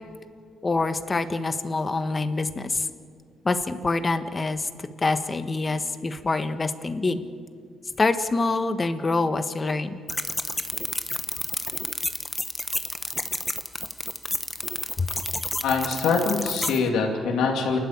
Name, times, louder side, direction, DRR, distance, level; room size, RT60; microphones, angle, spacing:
voice 1, 0.6-2.9 3.4-4.7 5.0-7.2 8.0-10.0 15.0-15.1, left 3 dB, 30° left, 9 dB, 1.4 m, -25 dB
sound 1, 10.1-16.8, left 1 dB, 10° left, 1.1 m, -30 dB
voice 2, 15.6-17.8, left 5 dB, 85° left, 0 dB, 2.6 m, -24 dB
28.5 x 12.0 x 8.8 m, 2.1 s
cardioid pair, 90°, 0 cm